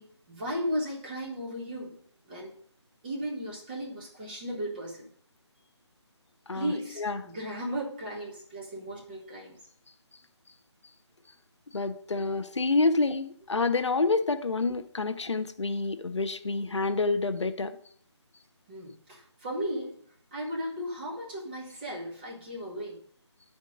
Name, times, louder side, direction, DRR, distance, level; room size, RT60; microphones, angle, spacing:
voice 1, 0.0-1.9 2.3-2.5 3.0-5.1 6.5-9.6 14.1-14.2 18.7-20.0 20.3-23.0, equal, 20° right, -2 dB, 1.4 m, -35 dB
voice 2, 6.5-7.2 11.7-17.8, left 3 dB, 75° left, 10 dB, 0.7 m, -28 dB
9.2 x 4.4 x 5.0 m, 0.62 s
figure-of-eight pair, 160°, 15 cm